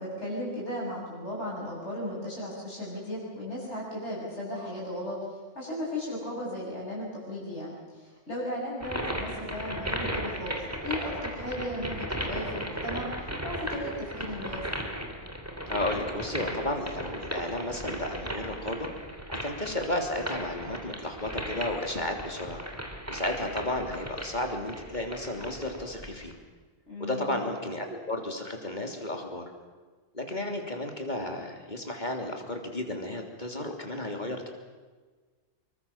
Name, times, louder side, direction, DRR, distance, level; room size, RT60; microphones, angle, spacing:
voice 1, 0.0-5.2 5.5-13.1 13.4-14.6 26.9-27.4, left 1 dB, 60° left, -5 dB, 7.7 m, -36 dB
sound 1, 8.8-26.3, equal, 10° right, 3.1 m, -36 dB
voice 2, 15.7-18.9 19.3-22.6 23.1-26.3 27.0-29.4 30.1-34.5, left 1 dB, 35° left, 3 dB, 3.4 m, -33 dB
26.0 x 23.0 x 7.3 m, 1.4 s
omnidirectional pair, 1.3 m